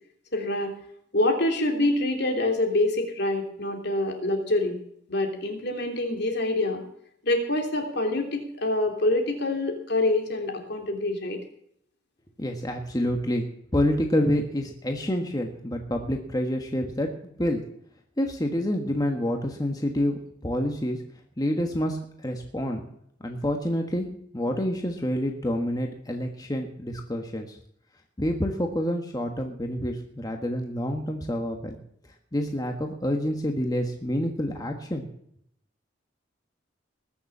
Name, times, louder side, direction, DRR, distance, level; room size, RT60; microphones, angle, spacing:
voice 1, 0.3-0.7 1.1-4.8 5.1-6.8 7.2-11.4, left 2 dB, 60° left, 3 dB, 3.0 m, -26 dB
voice 2, 12.4-13.4 13.7-17.6 18.2-21.0 21.4-22.8 23.2-24.1 24.3-27.5 28.2-31.8 32.3-35.1, equal, 20° left, 3 dB, 1.3 m, -28 dB
20.5 x 7.0 x 7.3 m, 0.70 s
head